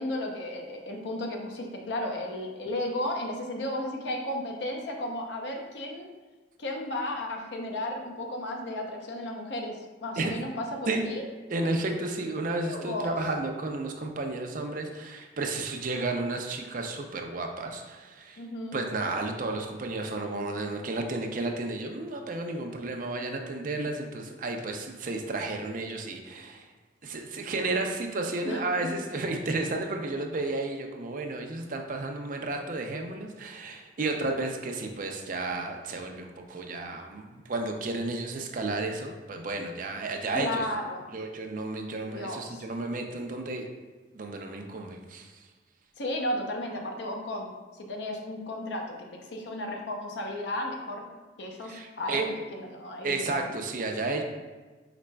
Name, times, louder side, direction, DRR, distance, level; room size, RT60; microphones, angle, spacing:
voice 1, 0.0-6.1 6.6-11.2 12.7-13.1 18.4-18.8 28.4-28.6 40.3-41.2 42.0-42.6 46.0-51.0 51.4-53.5, left 1 dB, 70° left, 1 dB, 0.6 m, -34 dB
voice 2, 11.5-18.4 18.7-26.7 27.0-40.7 41.1-43.7 44.1-45.4 51.6-52.2 53.0-54.2, right 2 dB, 45° right, 3 dB, 0.5 m, -32 dB
4.9 x 4.1 x 2.2 m, 1.3 s
head